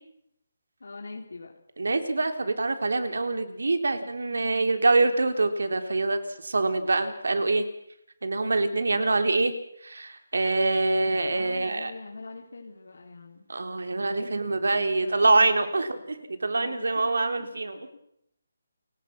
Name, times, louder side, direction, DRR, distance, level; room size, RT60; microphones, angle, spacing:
voice 1, 0.8-1.5 4.4-5.1 8.9-9.2 11.3-13.5 14.8-15.6 16.6-17.0 17.8-17.9, left 3 dB, 80° left, 1 dB, 4.1 m, -42 dB
voice 2, 1.8-7.7 8.2-9.5 9.8-11.9 13.5-17.9, right 3 dB, 90° right, 8 dB, 3.7 m, -25 dB
30.0 x 17.5 x 6.1 m, 0.73 s
hypercardioid pair, 175°, 0 cm